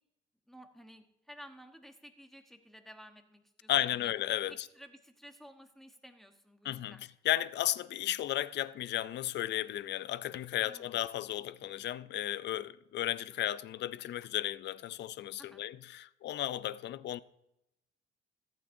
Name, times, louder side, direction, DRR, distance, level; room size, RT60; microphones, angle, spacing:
voice 1, 0.5-4.1 4.5-7.0 10.6-10.9 15.4-15.6, equal, ahead, 1.1 m, -54 dB
voice 2, 3.7-4.5 6.6-7.0 7.2-17.2, left 13 dB, 60° left, 0.4 m, -34 dB
14.0 x 8.9 x 2.7 m
cardioid pair, 90°, 20 cm